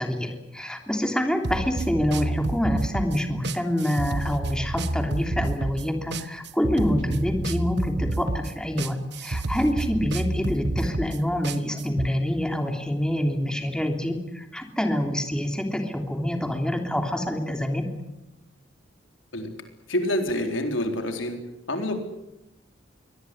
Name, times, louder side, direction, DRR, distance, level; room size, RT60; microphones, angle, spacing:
voice 1, 0.0-17.9, equal, 5° left, 4 dB, 3.1 m, -26 dB
sound 1, 1.4-12.1, right 2 dB, 60° right, 1.3 m, -29 dB
voice 2, 19.9-21.4 21.7-22.0, left 1 dB, 90° left, 5 dB, 4.2 m, -27 dB
23.5 x 19.0 x 9.8 m, 0.94 s
head